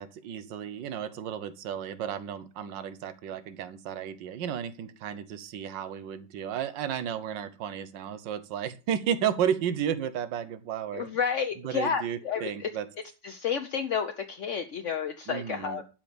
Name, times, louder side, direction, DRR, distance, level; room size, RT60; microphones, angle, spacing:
voice 1, 0.0-11.1 11.6-12.9 15.3-15.8, right 9 dB, 65° right, 13 dB, 1.6 m, -33 dB
voice 2, 10.9-12.7 13.2-15.8, left 6 dB, 60° left, 6 dB, 0.8 m, -30 dB
12.0 x 5.2 x 6.9 m, 0.34 s
omnidirectional pair, 2.2 m